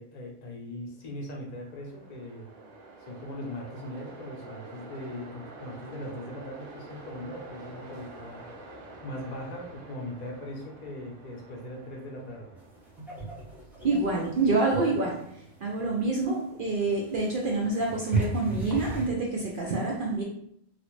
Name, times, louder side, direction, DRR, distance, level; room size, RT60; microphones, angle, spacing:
voice 1, 0.0-2.5 3.0-8.5 9.0-12.6, left 1 dB, 40° left, -1 dB, 0.7 m, -40 dB
Train, 1.2-18.4, right 2 dB, 85° right, 1.1 m, -49 dB
sound 1, 12.6-19.1, right 3 dB, ahead, 0.5 m, -36 dB
voice 2, 13.8-15.2 15.6-20.2, right 3 dB, 60° right, -2 dB, 0.5 m, -27 dB
3.2 x 2.5 x 3.1 m, 0.72 s
omnidirectional pair, 1.4 m